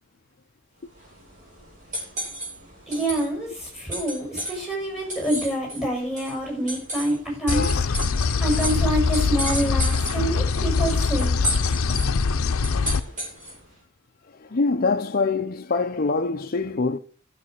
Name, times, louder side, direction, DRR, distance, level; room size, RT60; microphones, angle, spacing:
sound 1, 0.8-13.7, right 1 dB, 35° right, 5.6 m, -34 dB
voice 1, 2.9-7.8 8.4-11.6, right 1 dB, ahead, 6.3 m, -27 dB
sound 2, 7.5-13.0, left 4 dB, 80° left, 0.6 m, -23 dB
voice 2, 7.5-7.9 14.4-17.0, left 4 dB, 45° left, 0.6 m, -24 dB
12.5 x 6.8 x 6.5 m
head